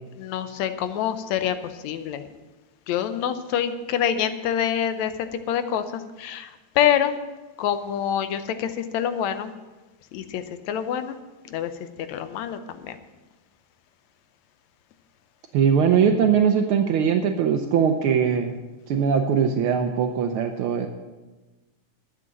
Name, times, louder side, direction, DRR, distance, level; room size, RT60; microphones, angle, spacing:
voice 1, 0.2-2.3 2.9-5.1 5.5-7.2 7.6-9.5 10.1-11.2 11.5-11.7 12.1-13.0, left 9 dB, 75° left, 10 dB, 2.0 m, -26 dB
voice 2, 15.5-18.5 18.9-20.9, right 7 dB, 85° right, 5 dB, 1.2 m, -21 dB
11.5 x 8.1 x 7.5 m, 1.2 s
omnidirectional pair, 3.3 m